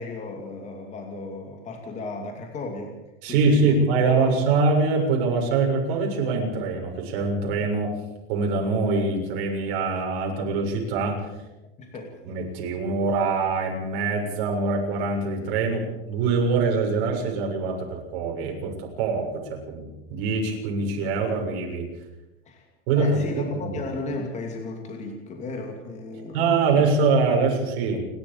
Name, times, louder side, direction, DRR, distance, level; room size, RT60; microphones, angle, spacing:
voice 1, 0.0-3.0 3.3-4.4 11.8-12.2 22.5-22.7 23.0-26.4 26.8-26.9, left 3 dB, 20° left, 3 dB, 2.6 m, -35 dB
voice 2, 3.2-7.9 8.3-11.3 12.2-21.9 22.9-23.8 26.3-28.1, right 4 dB, 55° right, 1 dB, 7.1 m, -24 dB
30.0 x 12.5 x 7.2 m, 0.98 s
supercardioid pair, 160°, 31 cm